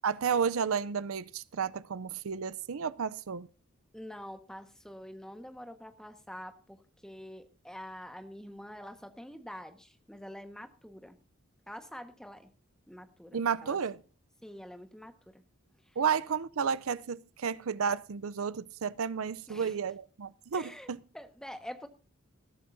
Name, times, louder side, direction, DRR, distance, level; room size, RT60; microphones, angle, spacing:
voice 1, 0.0-3.5 13.3-14.0 16.0-21.0, right 6 dB, 75° right, 0.5 m, -32 dB
voice 2, 3.9-11.2 11.7-12.5 12.9-13.8 14.4-15.4 15.8-16.0 19.5-19.8 20.5-20.9 21.1-21.9, equal, 5° left, 1.3 m, -46 dB
20.0 x 13.0 x 2.7 m
head